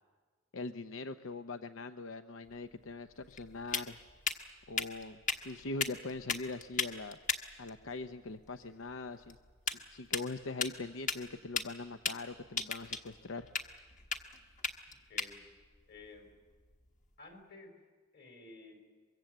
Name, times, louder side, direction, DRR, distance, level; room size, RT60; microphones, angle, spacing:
voice 1, 0.5-4.0 4.7-5.2 5.4-7.2 7.6-9.4 9.9-13.5, left 3 dB, 75° left, 9 dB, 0.7 m, -42 dB
sound 1, 2.4-17.2, left 5 dB, 40° left, 1.4 m, -40 dB
voice 2, 14.9-15.4 15.9-16.3 17.2-17.7 18.1-18.8, left 3 dB, 55° left, 3 dB, 4.8 m, -53 dB
24.0 x 22.5 x 7.8 m, 1.4 s
head